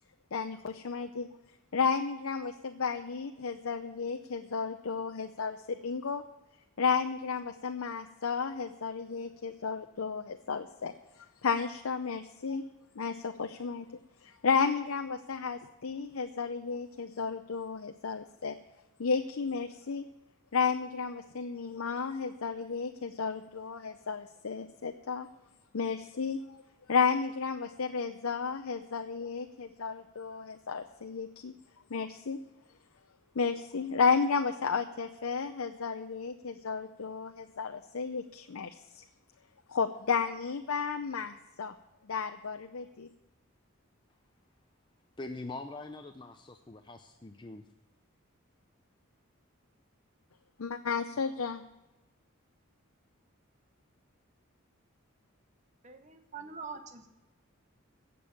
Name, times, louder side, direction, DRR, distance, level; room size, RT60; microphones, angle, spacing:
voice 1, 0.3-1.3 1.7-6.2 6.8-10.9 11.4-12.7 13.0-13.9 14.2-18.5 19.0-20.0 20.5-25.3 25.7-26.6 26.9-31.5 31.9-32.4 33.4-39.0 39.7-41.7 42.1-43.1 50.7-51.6, left 5 dB, 80° left, 6 dB, 0.6 m, -32 dB
voice 2, 45.2-47.6, left 2 dB, 20° left, 6 dB, 0.6 m, -43 dB
voice 3, 55.8-57.2, right 5 dB, 35° right, 7 dB, 1.2 m, -44 dB
16.5 x 7.0 x 7.1 m, 1.0 s
head